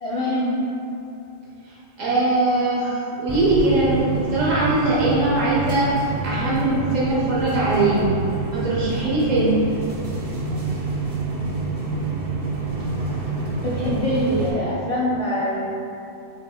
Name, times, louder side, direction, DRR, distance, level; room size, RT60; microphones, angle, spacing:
voice 1, 0.0-0.8 13.6-15.6, equal, 55° left, -8 dB, 0.3 m, -24 dB
voice 2, 2.0-5.9 6.2-8.0 8.5-9.6, right 2 dB, 80° right, -7 dB, 1.5 m, -21 dB
sound 1, 3.3-14.5, right 2 dB, 55° right, 0.4 m, -27 dB
5.7 x 3.5 x 2.2 m, 2.7 s
omnidirectional pair, 1.3 m